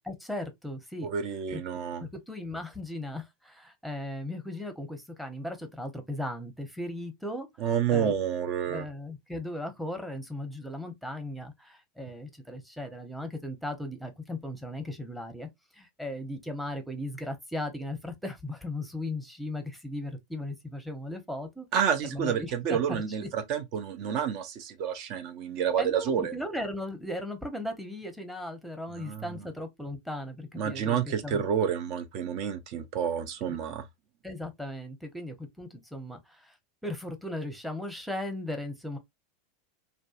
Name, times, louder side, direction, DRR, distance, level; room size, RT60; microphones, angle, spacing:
voice 1, 0.0-1.1 1.5-1.6 2.0-8.1 8.7-15.5 15.7-21.7 22.0-22.8 23.2-23.3 25.8-31.4 34.2-36.6 36.8-39.0, left 1 dB, ahead, 0.8 m, -37 dB
voice 2, 1.0-2.0 7.6-8.8 21.7-26.3 29.0-29.4 30.6-33.8, right 8 dB, 50° right, 0.5 m, -29 dB
2.5 x 2.2 x 2.4 m
figure-of-eight pair, 85°, 0 cm